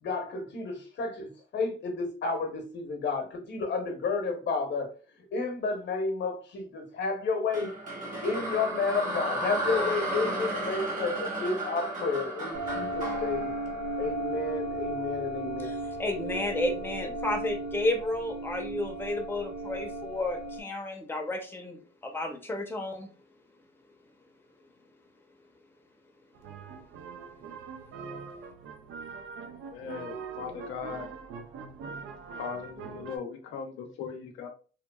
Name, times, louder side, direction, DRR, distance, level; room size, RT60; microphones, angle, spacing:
voice 1, 0.0-4.9 5.3-7.7 8.2-13.5 14.0-15.7, left 4 dB, 65° left, 0.8 m, -31 dB
sound 1, 7.5-14.7, right 1 dB, 40° right, 1.2 m, -33 dB
sound 2, 12.5-20.6, right 1 dB, 25° right, 0.8 m, -35 dB
voice 2, 15.6-21.8 22.0-23.1, left 1 dB, 10° left, 0.6 m, -32 dB
sound 3, 26.4-33.2, right 5 dB, 80° right, 0.5 m, -42 dB
voice 3, 29.4-31.1 32.3-34.5, left 6 dB, 85° left, 0.5 m, -39 dB
2.9 x 2.3 x 2.2 m
cardioid pair, 90°, 20 cm